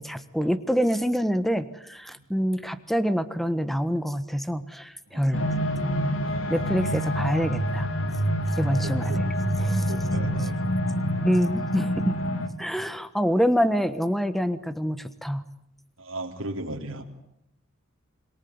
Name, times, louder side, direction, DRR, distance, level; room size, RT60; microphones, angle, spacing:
voice 1, 0.0-5.5 6.5-7.9 8.6-9.3 9.6-9.9 11.2-12.1 12.6-15.4, equal, ahead, 13 dB, 1.4 m, -26 dB
sound 1, 5.3-12.5, equal, 75° left, 2.6 m, -26 dB
voice 2, 6.2-6.7 8.8-9.4 9.9-10.6 11.0-11.3 16.0-17.2, right 1 dB, 70° right, 2 dB, 3.7 m, -37 dB
26.0 x 23.0 x 9.6 m, 0.76 s
head